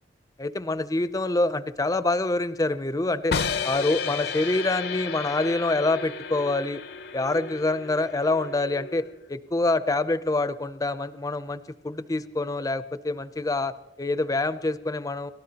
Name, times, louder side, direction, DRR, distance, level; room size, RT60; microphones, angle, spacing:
voice 1, 0.4-3.4 3.6-6.8 7.1-15.3, left 2 dB, 20° left, 13 dB, 0.5 m, -26 dB
sound 1, 3.3-9.3, left 5 dB, 60° left, 0.6 m, -33 dB
29.5 x 13.5 x 2.9 m, 0.92 s
head